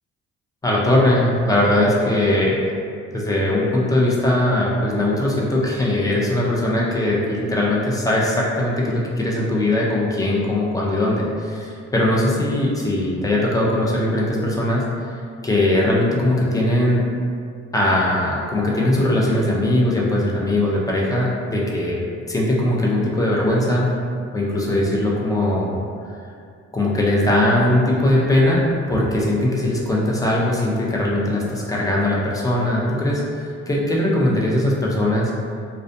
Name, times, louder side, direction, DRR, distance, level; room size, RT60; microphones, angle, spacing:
voice 1, 0.6-2.6 3.1-14.9 15.4-17.0 17.7-22.0 22.3-23.9 24.3-25.8 26.7-35.3, left 1 dB, 10° left, -4 dB, 0.5 m, -20 dB
2.3 x 2.2 x 2.6 m, 2.3 s
cardioid pair, 90°, 30 cm